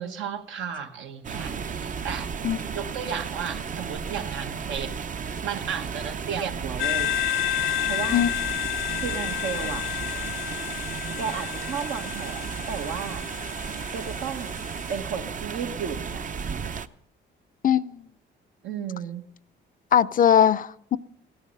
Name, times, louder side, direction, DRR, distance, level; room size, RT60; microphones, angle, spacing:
voice 1, 0.0-2.3 2.7-4.9 5.4-7.2 7.9-8.2 9.0-9.9 11.2-13.2 13.9-14.6 14.9-16.2 18.6-19.2, right 7 dB, 75° right, 1.4 m, -33 dB
sound 1, 1.2-16.9, right 6 dB, 40° right, 0.7 m, -34 dB
sound 2, 6.8-15.0, left 11 dB, 85° left, 0.6 m, -31 dB
voice 2, 17.6-18.1 19.9-21.0, left 9 dB, 45° left, 0.5 m, -20 dB
17.0 x 12.0 x 5.5 m
cardioid pair, 90°, 20 cm